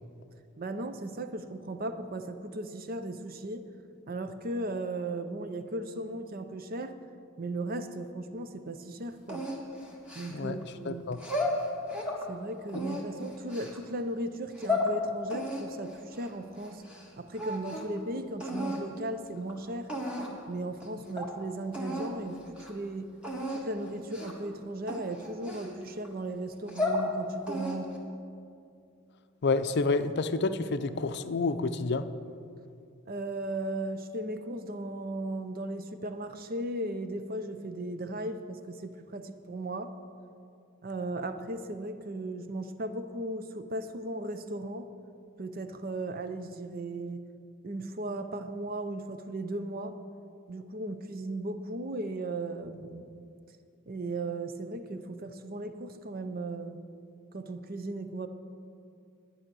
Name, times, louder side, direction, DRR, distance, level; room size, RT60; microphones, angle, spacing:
voice 1, 0.6-3.7 4.1-7.0 7.4-9.5 10.1-11.1 12.3-16.8 17.2-19.9 20.5-23.2 23.5-28.0 33.1-40.0 40.8-44.9 45.4-47.3 47.6-50.0 50.5-53.3 53.9-56.8 57.3-58.3, right 2 dB, 45° right, 10 dB, 0.6 m, -36 dB
sound 1, 9.3-10.6 11.1-12.2 12.7-13.8 14.4-14.9 15.3-17.1 17.3-18.0 18.4-18.8 19.5-19.6 19.9-20.4 20.8-20.9 21.2-21.3 21.7-22.1 22.5-22.7 23.2-23.6 24.1-24.4 24.9-26.1 26.5-27.1 27.5-28.0, left 2 dB, 5° right, 1.6 m, -33 dB
voice 2, 10.3-11.2 29.4-32.0, left 3 dB, 50° left, 10 dB, 0.5 m, -29 dB
11.5 x 9.9 x 6.2 m, 2.5 s
head